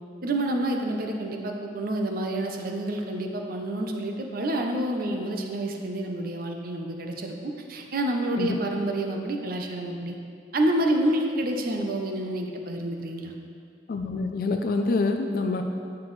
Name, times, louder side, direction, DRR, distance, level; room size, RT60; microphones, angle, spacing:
voice 1, 0.2-10.2 10.5-13.3, right 1 dB, 55° right, 2 dB, 0.7 m, -28 dB
voice 2, 13.9-15.6, left 3 dB, 55° left, 4 dB, 0.4 m, -26 dB
9.6 x 5.9 x 3.2 m, 2.4 s
head